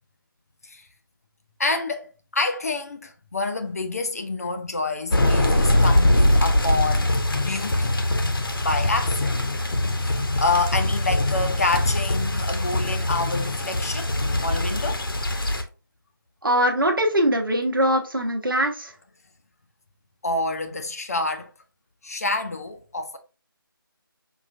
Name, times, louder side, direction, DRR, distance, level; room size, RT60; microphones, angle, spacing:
voice 1, 1.6-8.0 8.6-9.3 10.0-14.1 14.4-15.0 20.2-21.5 22.0-23.2, left 3 dB, 40° left, 0.5 m, -28 dB
sound 1, 5.1-15.6, left 1 dB, 70° left, 0.8 m, -22 dB
voice 2, 16.4-18.9, equal, 65° right, 1.0 m, -22 dB
5.2 x 2.4 x 2.5 m
figure-of-eight pair, 160°, 12 cm